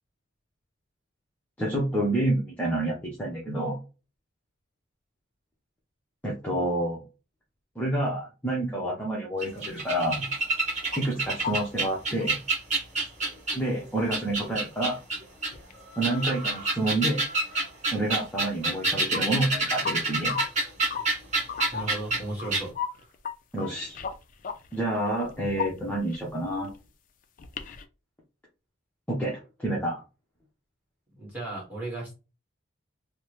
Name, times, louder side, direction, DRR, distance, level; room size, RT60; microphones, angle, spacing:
voice 1, 1.6-3.8 6.2-7.0 7.8-10.2 11.0-12.4 13.5-15.0 16.0-17.2 17.9-20.4 23.5-24.0 24.7-26.7 29.1-30.0, right 1 dB, 10° left, -5 dB, 0.7 m, -28 dB
sound 1, 9.4-13.7 14.1-15.5 15.9-22.2 22.5-22.6, right 2 dB, 35° right, 1.2 m, -28 dB
sound 2, 10.5-11.2 11.4-11.6 12.2-12.3 12.5-12.6 14.3-14.4 15.2-15.3 15.5-15.7 16.1-16.4 17.1-17.2 17.5-17.6 18.8-19.3 19.8-19.9 20.3-20.4 20.9-21.1 21.5-23.3 23.6-26.8 27.4-27.8, left 7 dB, 40° left, 0.3 m, -35 dB
voice 2, 21.7-23.1 31.1-32.1, right 2 dB, 10° right, -4 dB, 1.5 m, -36 dB
3.4 x 2.0 x 2.9 m, 0.29 s
head